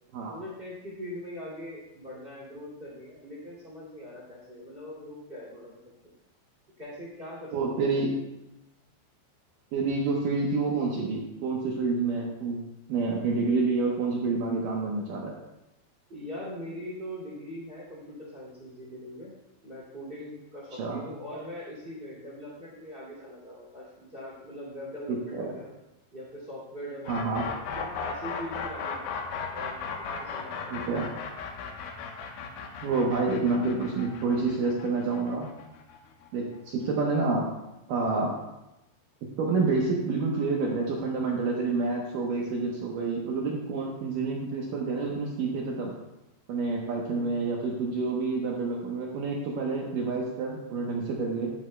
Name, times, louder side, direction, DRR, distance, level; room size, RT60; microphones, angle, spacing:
voice 1, 0.3-5.7 6.8-8.0 16.1-19.3 19.6-25.7 26.1-29.8 30.2-30.9 47.1-47.3, equal, 20° right, -5 dB, 1.5 m, -41 dB
voice 2, 7.5-8.2 9.7-15.3 20.8-21.0 25.1-25.5 27.1-27.5 30.7-31.1 32.8-35.5 36.3-37.4 37.9-38.4 39.2-46.0 46.5-51.5, right 3 dB, 75° right, -1 dB, 2.0 m, -28 dB
sound 1, 27.0-36.9, left 6 dB, 75° left, 2.5 m, -36 dB
12.0 x 11.0 x 2.2 m, 0.94 s
omnidirectional pair, 5.1 m